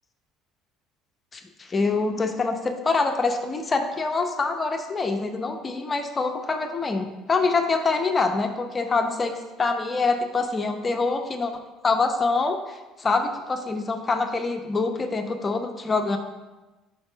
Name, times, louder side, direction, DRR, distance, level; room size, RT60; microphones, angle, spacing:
voice 1, 1.3-11.5 11.8-16.2, left 3 dB, 30° left, 5 dB, 0.8 m, -25 dB
5.3 x 4.8 x 5.0 m, 1.1 s
hypercardioid pair, 65°, 0 cm